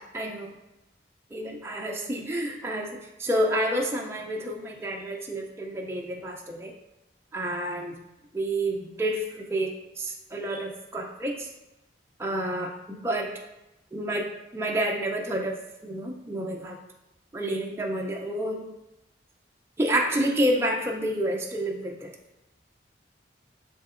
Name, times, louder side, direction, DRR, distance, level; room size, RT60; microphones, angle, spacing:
voice 1, 0.1-0.5 1.3-2.9 3.2-6.7 7.3-8.0 8.3-11.5 12.2-13.4 13.9-15.6 15.8-16.8 17.3-18.7 19.8-22.1, right 1 dB, 15° right, 0 dB, 0.4 m, -29 dB
7.8 x 2.7 x 2.4 m, 0.95 s
head